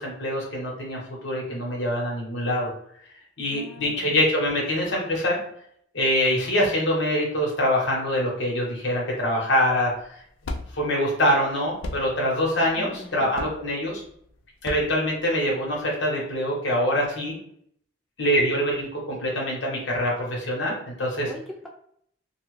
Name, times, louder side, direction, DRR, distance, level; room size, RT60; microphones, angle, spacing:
voice 1, 0.0-2.7 3.4-5.4 5.9-9.9 10.7-14.0 14.6-17.4 18.2-21.3, equal, 70° left, -2 dB, 1.1 m, -24 dB
voice 2, 3.5-4.1 12.8-13.3 21.2-21.7, left 1 dB, ahead, -2 dB, 0.3 m, -41 dB
sound 1, 9.6-15.8, left 2 dB, 85° left, 0.4 m, -38 dB
2.8 x 2.3 x 3.1 m, 0.68 s
head